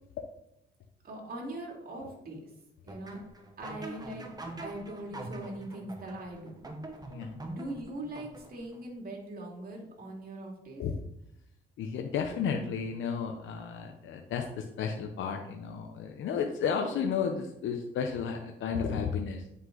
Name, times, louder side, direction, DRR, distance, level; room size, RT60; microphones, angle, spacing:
voice 1, 1.0-2.5 2.8-3.2 3.6-4.3 4.6-6.6 7.4-10.8, right 1 dB, 50° right, 0 dB, 2.8 m, -41 dB
sound 1, 2.9-8.8, right 2 dB, 20° right, 1.3 m, -44 dB
voice 2, 7.1-7.4 10.8-10.9 11.8-19.5, left 6 dB, 75° left, 3 dB, 0.8 m, -33 dB
9.7 x 5.5 x 3.9 m, 0.81 s
cardioid pair, 90°, 20 cm